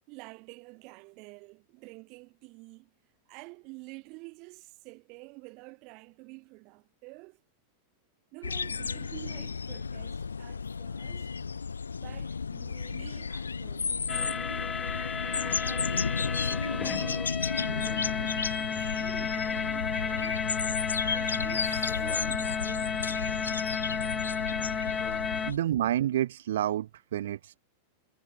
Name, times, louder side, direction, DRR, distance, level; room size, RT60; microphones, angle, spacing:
voice 1, 0.1-2.9 3.3-7.4 8.3-11.3 12.0-14.7 15.4-20.4 21.0-23.5 25.4-25.6, right 28 dB, 45° right, 7.3 m, -49 dB
sound 1, 8.4-25.6, left 5 dB, 75° left, 0.5 m, -33 dB
sound 2, 14.1-25.5, left 6 dB, 20° left, 0.4 m, -32 dB
voice 2, 25.1-27.6, right 12 dB, 60° right, 0.5 m, -30 dB
figure-of-eight pair, 90°, 0 cm